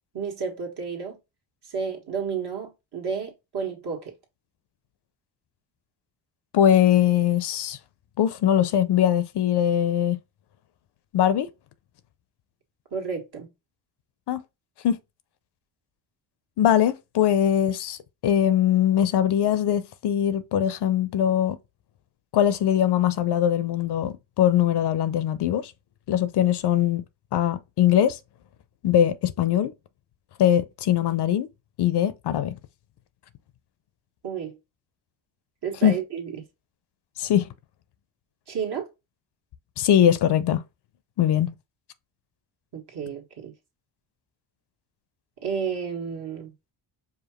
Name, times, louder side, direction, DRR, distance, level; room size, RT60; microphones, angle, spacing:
voice 1, 0.1-1.2 1.7-4.1 12.9-13.5 34.2-34.6 35.6-36.4 38.5-38.9 42.7-43.5 45.4-46.5, right 6 dB, 55° right, 1.6 m, -31 dB
voice 2, 6.5-7.8 8.2-10.2 11.1-11.5 14.3-14.4 14.8-15.0 16.6-21.6 22.3-25.7 26.1-27.0 27.3-28.2 28.8-29.7 30.4-31.5 31.8-32.5 35.8-36.0 37.2-37.5 39.8-40.6 41.2-41.5, left 10 dB, 60° left, 0.5 m, -21 dB
4.9 x 2.4 x 3.0 m
cardioid pair, 95°, 47 cm